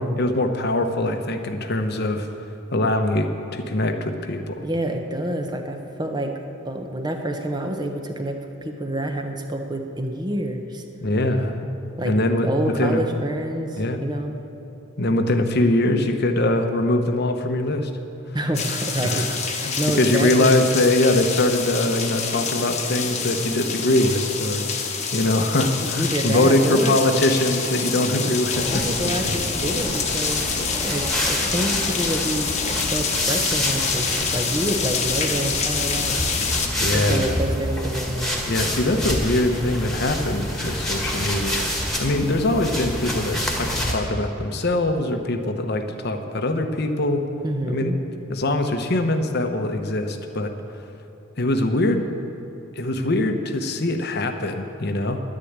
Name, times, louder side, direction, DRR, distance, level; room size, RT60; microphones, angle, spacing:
voice 1, 0.0-2.3 2.7-4.7 11.0-11.7 12.0-13.0 13.8-14.0 15.0-17.9 19.0-28.9 29.2-29.4 36.8-37.4 38.5-41.7 42.0-47.3 47.7-47.9 48.3-50.6 51.4-52.0 52.8-55.2, left 1 dB, 50° left, 6 dB, 1.0 m, -22 dB
voice 2, 4.6-6.4 6.6-10.8 12.0-12.1 12.4-14.4 18.3-20.7 25.8-26.9 27.9-28.0 28.7-36.2 36.8-38.4 47.4-48.0, right 1 dB, 20° right, 4 dB, 0.9 m, -27 dB
sound 1, 18.5-36.7, left 5 dB, 35° left, 1.2 m, -27 dB
sound 2, 28.5-43.9, equal, ahead, 1.7 m, -28 dB
11.0 x 10.0 x 8.8 m, 3.0 s
head